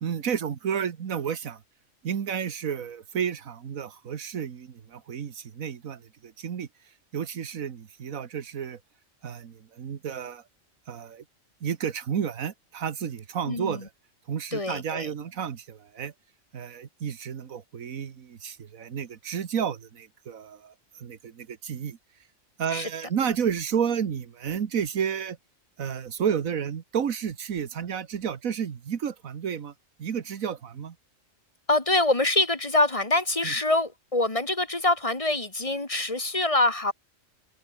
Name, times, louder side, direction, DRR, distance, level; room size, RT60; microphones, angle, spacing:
voice 1, 0.0-1.6 2.0-6.7 7.1-8.8 9.2-10.4 10.9-11.2 11.6-13.9 14.3-16.1 16.5-22.0 22.6-25.4 25.8-29.7 30.0-30.9 33.4-33.5, right 7 dB, 90° right, 1.7 m, -31 dB
voice 2, 13.5-13.8 14.5-15.1 22.7-22.9 31.7-36.9, left 2 dB, 25° left, 1.9 m, -25 dB
omnidirectional pair, 1.4 m